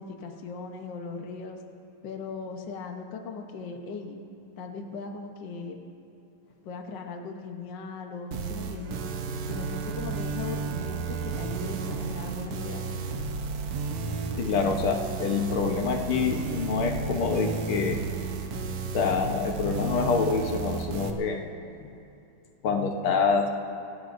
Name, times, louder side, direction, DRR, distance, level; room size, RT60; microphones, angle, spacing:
voice 1, 0.0-1.6 2.0-4.2 4.6-5.8 6.6-9.0 9.5-12.9, left 4 dB, 80° left, 3 dB, 1.0 m, -38 dB
sound 1, 8.3-21.1, right 4 dB, 65° right, 1.4 m, -33 dB
Bowed string instrument, 8.8-13.9, right 8 dB, 90° right, 2.2 m, -40 dB
voice 2, 14.4-18.0 18.9-21.4 22.6-23.5, left 5 dB, 65° left, 3 dB, 1.4 m, -26 dB
28.0 x 17.0 x 2.6 m, 2.7 s
omnidirectional pair, 3.5 m